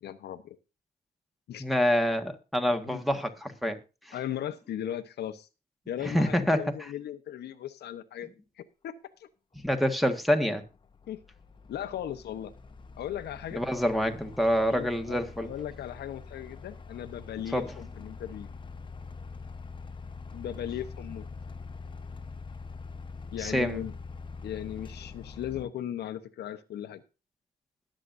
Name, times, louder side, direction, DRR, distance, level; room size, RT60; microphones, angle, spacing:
voice 1, 0.0-0.6 1.5-1.6 2.8-3.0 4.1-5.5 5.9-8.9 9.2-9.3 11.1-11.2 11.7-12.5 13.0-13.6 14.6-18.5 20.3-21.3 23.3-23.9 24.4-27.0, left 11 dB, 75° left, 1.0 m, -37 dB
voice 2, 1.6-3.8 4.1-4.2 6.0-6.9 9.6-10.6 13.5-15.5 17.5-17.7 23.4-23.8, equal, ahead, 1.6 m, -27 dB
sound 1, 10.5-25.6, left 4 dB, 30° left, 1.0 m, -44 dB
21.0 x 7.6 x 2.6 m
cardioid pair, 115°, 17 cm